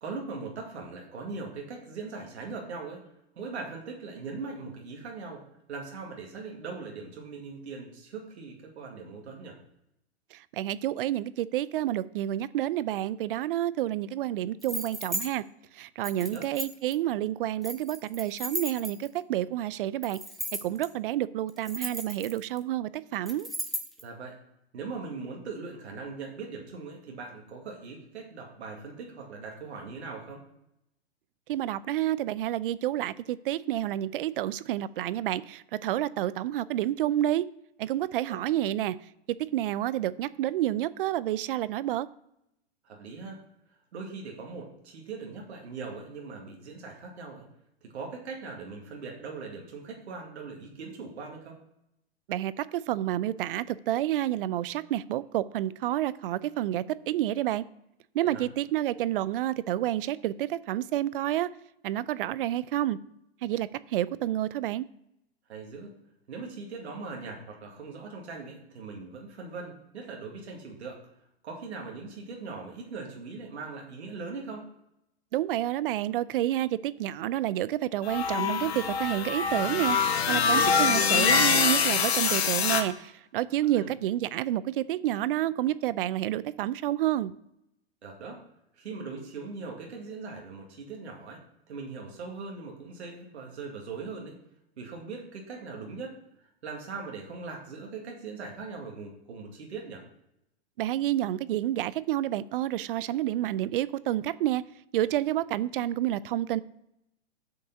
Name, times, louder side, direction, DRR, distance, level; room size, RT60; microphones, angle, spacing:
voice 1, 0.0-3.0 3.4-5.4 5.7-9.6 16.2-16.5 24.0-24.3 24.7-30.4 38.3-38.4 42.8-43.4 43.9-47.4 47.8-51.6 58.2-58.4 65.5-66.0 66.3-71.0 71.4-74.7 83.7-83.9 88.0-88.4 88.7-94.4 94.8-96.1 96.6-100.0, right 4 dB, 75° right, 0 dB, 2.1 m, -40 dB
voice 2, 10.3-15.4 15.7-20.2 20.6-23.5 31.5-37.4 37.8-39.0 39.4-42.1 52.3-57.7 58.1-61.5 61.8-63.0 63.4-64.9 75.3-80.0 80.3-87.3 100.8-104.6 104.9-106.6, right 13 dB, 55° right, 18 dB, 0.5 m, -29 dB
sound 1, 14.6-15.3 16.0-16.9 17.6-19.2 20.0-20.9 21.5-22.6 23.3-24.0, equal, ahead, 0.9 m, -35 dB
sound 2, 78.1-82.8, left 6 dB, 70° left, 1.2 m, -24 dB
6.6 x 5.4 x 6.7 m, 0.82 s
hypercardioid pair, 125°, 33 cm